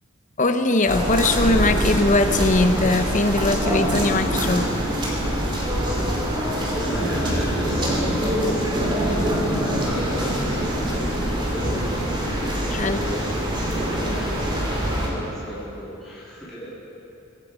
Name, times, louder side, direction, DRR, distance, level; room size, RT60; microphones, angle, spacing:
voice 1, 0.4-4.7 12.7-13.0, left 2 dB, 35° left, 8 dB, 0.8 m, -20 dB
sound 1, 0.9-15.1, equal, 25° right, 2.7 m, -24 dB
voice 2, 6.3-11.7 12.8-14.4 15.0-16.7, equal, ahead, -11 dB, 3.4 m, -34 dB
23.5 x 10.5 x 5.1 m, 2.9 s
head